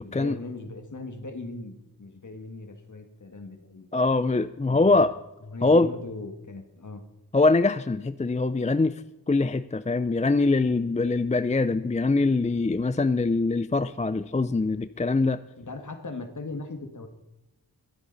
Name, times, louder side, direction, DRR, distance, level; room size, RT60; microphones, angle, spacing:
voice 1, 0.0-3.9 4.7-5.1 5.5-7.0 15.6-17.1, left 3 dB, 50° left, 7 dB, 1.9 m, -39 dB
voice 2, 3.9-5.1 5.6-5.9 7.3-9.0 9.3-15.4, left 3 dB, 20° left, 13 dB, 0.5 m, -23 dB
23.0 x 8.0 x 4.1 m, 0.97 s
cardioid pair, 55°, 38 cm